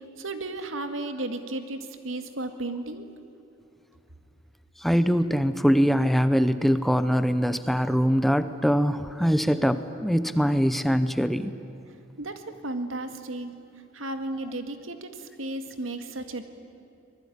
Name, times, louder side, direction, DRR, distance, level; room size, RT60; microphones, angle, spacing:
voice 1, 0.2-3.1 12.2-13.6 13.9-16.4, right 2 dB, 80° right, 7 dB, 2.0 m, -34 dB
voice 2, 4.8-11.5, equal, ahead, 12 dB, 0.7 m, -23 dB
25.0 x 20.0 x 10.0 m, 2.6 s
head